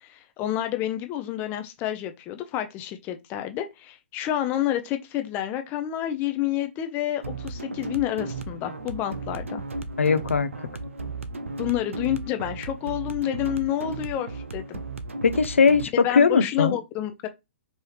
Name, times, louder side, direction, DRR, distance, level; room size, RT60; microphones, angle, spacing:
voice 1, 0.0-9.6 11.6-14.8 16.0-17.3, left 12 dB, 30° left, 0.5 m, -29 dB
sound 1, 7.2-15.9, right 2 dB, 90° right, 0.5 m, -35 dB
voice 2, 10.0-10.5 15.2-16.8, left 5 dB, 85° left, 0.5 m, -20 dB
4.7 x 2.7 x 3.2 m
hypercardioid pair, 125°, 7 cm